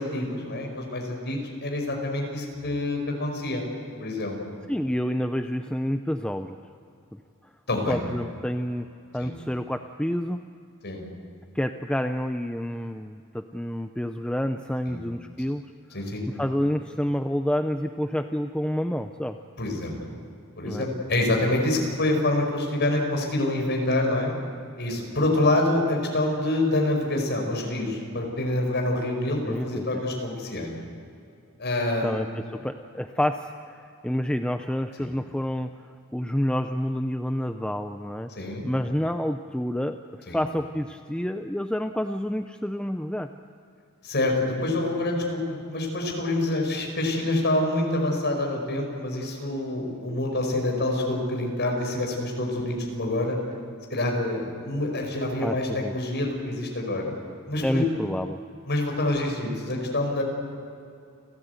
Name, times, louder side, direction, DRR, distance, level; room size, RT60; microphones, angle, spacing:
voice 1, 0.0-3.7 4.0-4.4 7.7-8.0 9.2-9.3 10.8-11.0 14.9-15.0 15.9-16.2 19.6-20.2 20.6-24.3 24.8-30.7 31.6-32.1 38.4-38.7 40.3-40.4 44.0-53.4 53.9-57.1 57.5-57.9 58.7-60.2, left 1 dB, 50° left, 1 dB, 5.1 m, -26 dB
voice 2, 4.7-6.6 7.1-7.2 7.9-8.9 9.1-10.4 11.5-15.6 16.3-19.4 20.6-20.9 29.4-30.0 32.0-43.3 55.4-55.9 57.6-58.4, equal, 5° left, 7 dB, 0.5 m, -29 dB
30.0 x 14.0 x 8.1 m, 2.5 s
head